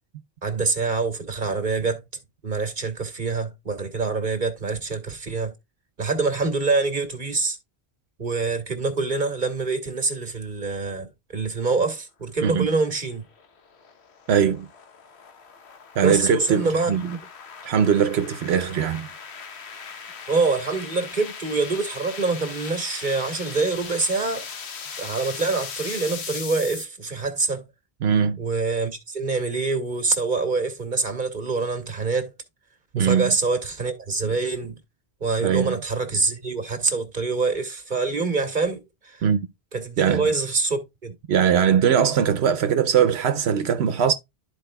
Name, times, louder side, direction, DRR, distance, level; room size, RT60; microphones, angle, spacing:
voice 1, 0.4-2.0 2.4-5.5 6.0-7.6 8.2-13.2 16.0-17.2 20.3-24.5 25.0-27.7 28.4-32.3 33.0-34.8 35.2-39.2 39.7-41.1, right 4 dB, 45° right, 1.7 m, -25 dB
sound 1, 12.9-26.8, left 6 dB, 85° left, 1.2 m, -39 dB
voice 2, 14.3-14.7 16.0-17.1 17.6-19.1 28.0-28.4 32.9-33.3 35.4-35.8 39.2-39.4 40.0-40.3 41.3-44.1, right 8 dB, 80° right, 1.0 m, -21 dB
12.5 x 4.6 x 2.2 m
omnidirectional pair, 1.1 m